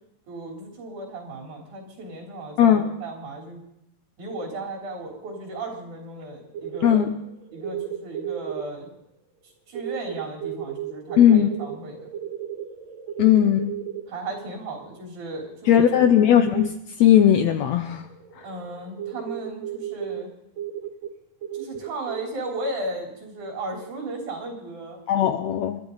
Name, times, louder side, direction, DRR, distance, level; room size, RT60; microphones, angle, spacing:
voice 1, 0.3-3.6 4.2-7.1 7.5-8.9 9.7-12.1 14.1-16.0 18.4-20.3 21.5-25.0, right 2 dB, 65° right, -1 dB, 5.1 m, -35 dB
sound 1, 6.2-6.3 6.5-8.6 9.8-14.5 16.5-16.7 17.7-20.2 20.6-21.1 21.4-22.2, right 10 dB, 90° right, 3.5 m, -34 dB
voice 2, 6.8-7.1 11.2-11.5 13.2-13.7 15.7-16.7 17.0-18.1 25.1-25.8, left 10 dB, 75° left, 8 dB, 1.7 m, -17 dB
29.0 x 12.0 x 4.0 m, 0.81 s
omnidirectional pair, 3.8 m